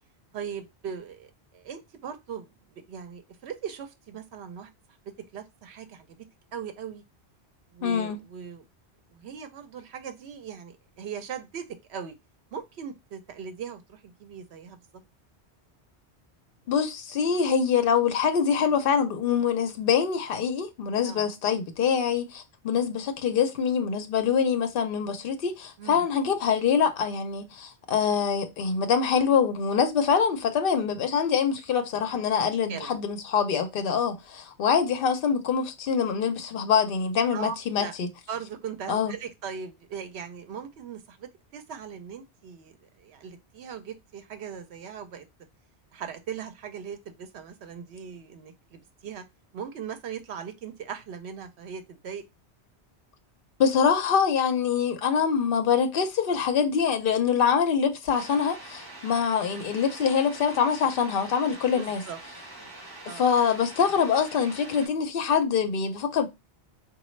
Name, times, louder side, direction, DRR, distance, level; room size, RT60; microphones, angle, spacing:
voice 1, 0.3-4.7 5.3-6.3 6.5-7.0 7.7-8.6 9.1-12.1 12.5-14.8 21.1-21.3 25.8-26.1 32.3-32.9 37.3-37.9 38.3-45.3 45.9-49.2 49.5-52.2 61.7-62.2 62.6-62.7 63.1-63.3, right 7 dB, 75° right, 0.9 m, -39 dB
voice 2, 7.8-8.2 16.7-38.1 38.9-39.2 53.6-62.0 63.1-66.3, left 6 dB, 60° left, 0.8 m, -24 dB
sound 1, 58.1-64.9, right 2 dB, 20° right, 1.2 m, -44 dB
3.9 x 2.3 x 3.1 m
omnidirectional pair, 1.1 m